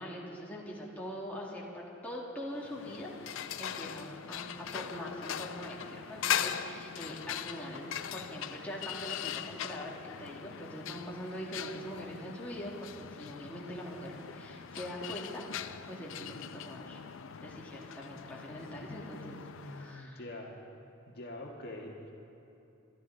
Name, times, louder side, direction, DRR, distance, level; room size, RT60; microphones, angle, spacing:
voice 1, 0.0-15.4 15.9-17.0 17.4-19.4 19.6-20.2, equal, 10° left, -4 dB, 2.0 m, -43 dB
sound 1, 2.6-20.0, left 9 dB, 65° left, 0.5 m, -40 dB
voice 2, 18.7-20.5 21.1-22.1, left 1 dB, 50° left, -1 dB, 1.6 m, -45 dB
23.0 x 12.5 x 3.9 m, 2.9 s
head